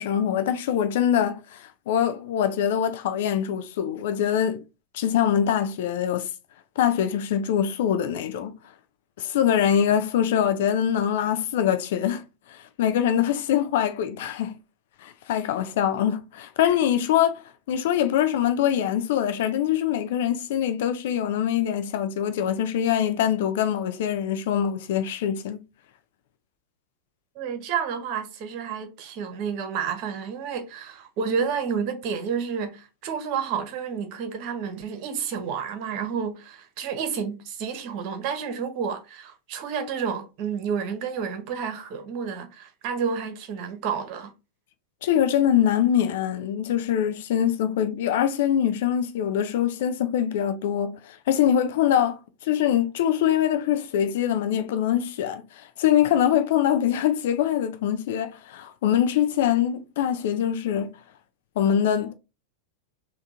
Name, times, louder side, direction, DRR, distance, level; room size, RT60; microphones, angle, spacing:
voice 1, 0.0-4.6 4.9-6.3 6.8-8.5 9.2-14.5 15.0-25.6 45.0-60.9 61.6-62.1, left 10 dB, 55° left, 0.4 m, -24 dB
voice 2, 27.4-44.3, right 6 dB, 40° right, 0.9 m, -30 dB
3.5 x 2.3 x 4.2 m
figure-of-eight pair, 90°, 0 cm